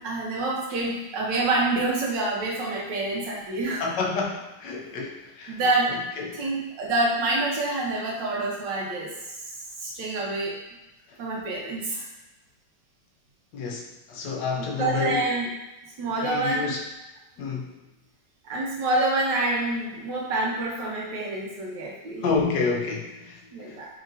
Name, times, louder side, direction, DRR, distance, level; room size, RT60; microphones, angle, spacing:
voice 1, 0.0-3.8 5.5-6.0 6.3-9.1 9.8-10.5 11.2-12.1 14.6-15.5 16.0-16.7 18.4-22.2 23.5-23.9, right 2 dB, 75° right, -3 dB, 1.5 m, -27 dB
voice 2, 3.7-5.6 6.2-6.4 13.5-15.2 16.2-16.8 17.4-17.8 22.2-23.4 23.7-23.8, left 4 dB, 75° left, 0 dB, 1.2 m, -29 dB
3.8 x 3.6 x 2.6 m, 1.0 s
omnidirectional pair, 2.0 m